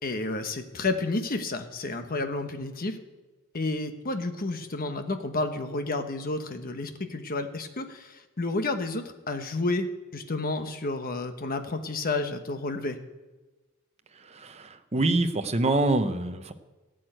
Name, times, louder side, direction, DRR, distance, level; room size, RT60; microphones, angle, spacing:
voice 1, 0.0-3.0 3.5-9.9 10.1-13.0, left 2 dB, 45° left, 7 dB, 1.1 m, -31 dB
voice 2, 14.1-16.5, right 2 dB, 30° right, 8 dB, 0.8 m, -26 dB
14.5 x 6.4 x 9.0 m, 1.2 s
head